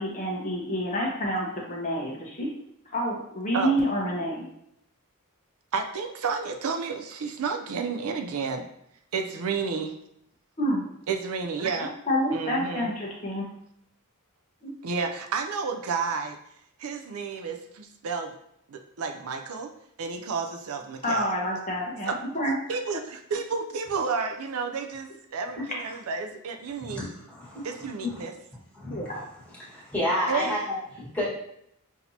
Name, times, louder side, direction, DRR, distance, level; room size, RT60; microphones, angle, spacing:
voice 1, 0.0-2.5 2.9-4.5 10.6-10.8 12.1-13.5 14.6-14.7 21.0-22.5 28.9-29.2, equal, 35° left, -2 dB, 0.9 m, -28 dB
voice 2, 5.7-8.6 9.1-9.9 11.1-11.9 12.3-12.9 14.8-16.4 16.8-18.3 18.7-19.7 20.0-21.3 22.0-22.1 22.7-27.1 27.6-28.3 30.3-30.6, right 5 dB, 75° right, 5 dB, 0.5 m, -31 dB
voice 3, 26.9-27.7 28.0-28.3 28.7-29.0 29.5-31.3, left 1 dB, 5° left, -9 dB, 1.5 m, -30 dB
5.9 x 2.7 x 2.8 m, 0.74 s
head